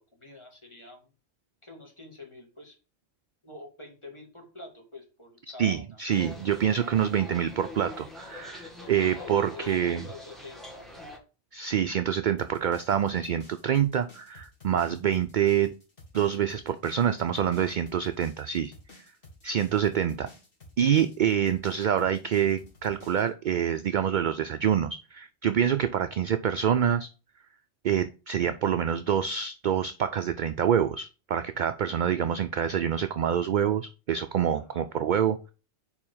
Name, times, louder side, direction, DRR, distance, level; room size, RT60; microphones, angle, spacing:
voice 1, 0.1-1.1 1.6-2.8 3.4-6.0 8.8-10.9 34.5-34.9, left 2 dB, 25° left, 0 dB, 2.3 m, -46 dB
voice 2, 5.6-10.0 11.5-15.8 16.1-18.7 19.4-20.3 20.8-27.1 27.8-35.4, right 9 dB, 60° right, 10 dB, 0.5 m, -26 dB
sound 1, 6.1-11.2, left 2 dB, ahead, 1.7 m, -44 dB
sound 2, 12.4-23.3, left 1 dB, 55° left, 2.1 m, -52 dB
4.9 x 4.8 x 5.5 m, 0.32 s
omnidirectional pair, 1.1 m